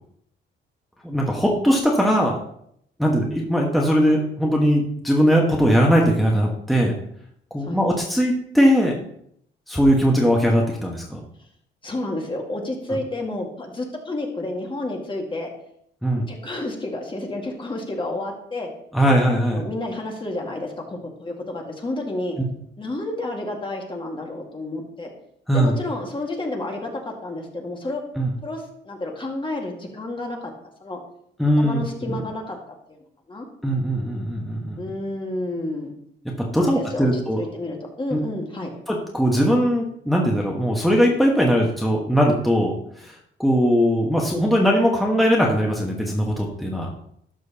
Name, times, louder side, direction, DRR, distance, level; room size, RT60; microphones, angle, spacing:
voice 1, 1.0-2.4 3.0-6.9 7.5-8.9 9.7-11.2 16.0-16.3 18.9-19.6 25.5-25.7 28.2-28.3 31.4-32.2 33.6-34.8 36.4-37.4 38.1-38.2 38.9-46.9, equal, ahead, -2 dB, 1.5 m, -20 dB
voice 2, 11.8-15.5 16.3-18.7 19.5-22.4 22.8-25.1 25.5-28.0 28.4-30.5 30.8-31.0 31.6-32.6 32.9-33.0 33.3-33.5 34.8-35.9 36.6-37.1 37.4-38.7, left 2 dB, 25° left, 1 dB, 1.9 m, -30 dB
12.0 x 6.3 x 2.9 m, 0.69 s
cardioid pair, 90°, 20 cm